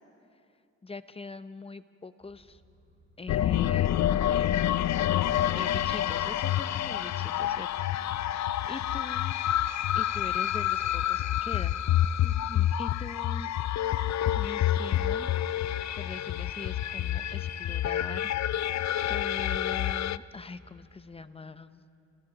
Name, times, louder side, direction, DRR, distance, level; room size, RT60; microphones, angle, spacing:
voice 1, 0.8-2.6 3.2-5.1 5.5-7.7 8.2-9.3 9.9-11.8 12.2-13.5 14.3-18.8 19.1-21.8, left 3 dB, 20° left, 12 dB, 0.7 m, -43 dB
sound 1, 2.2-20.9, equal, 30° right, 4.9 m, -62 dB
sound 2, 3.3-20.2, left 12 dB, 70° left, 0.5 m, -28 dB
29.0 x 29.0 x 4.0 m, 2.5 s
cardioid pair, 115°, 29 cm